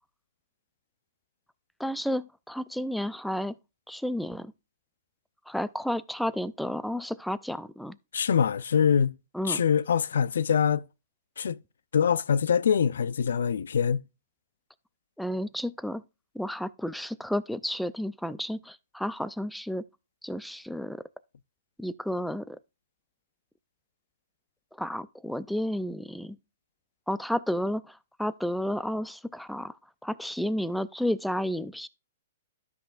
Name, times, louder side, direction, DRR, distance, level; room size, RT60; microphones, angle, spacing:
voice 1, 1.8-3.5 3.9-4.5 5.5-8.0 9.3-9.6 15.2-16.0 16.3-19.8 20.2-21.0 21.8-22.6 24.8-26.4 27.1-29.8 30.0-31.9, equal, ahead, 0.3 m, -31 dB
voice 2, 8.1-9.1 9.5-10.8 11.4-11.6 11.9-14.0, left 7 dB, 85° left, 0.4 m, -24 dB
13.0 x 5.7 x 2.5 m
hypercardioid pair, 150°, 0 cm